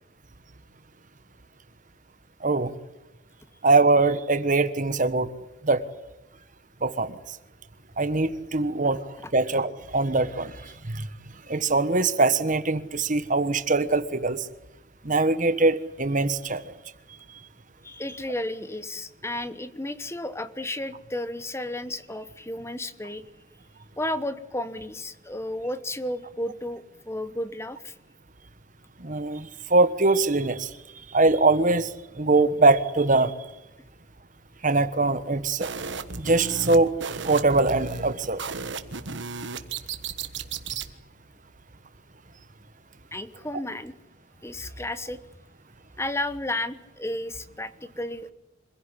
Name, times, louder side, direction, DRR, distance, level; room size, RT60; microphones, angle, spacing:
voice 1, 3.6-5.3 5.6-5.8 6.8-7.2 8.0-9.0 9.3-11.1 11.5-14.5 15.0-16.7 29.0-30.7 31.1-31.9 32.2-33.3 34.6-35.7 36.2-36.9 37.2-38.4, right 3 dB, 40° right, 11 dB, 1.3 m, -22 dB
voice 2, 17.8-23.2 24.0-28.0 43.1-43.9 44.4-45.2 46.0-48.3, left 1 dB, 15° left, 13 dB, 1.0 m, -33 dB
sound 1, 35.6-40.9, right 5 dB, 60° right, 1.5 m, -35 dB
26.0 x 16.0 x 9.9 m, 0.94 s
head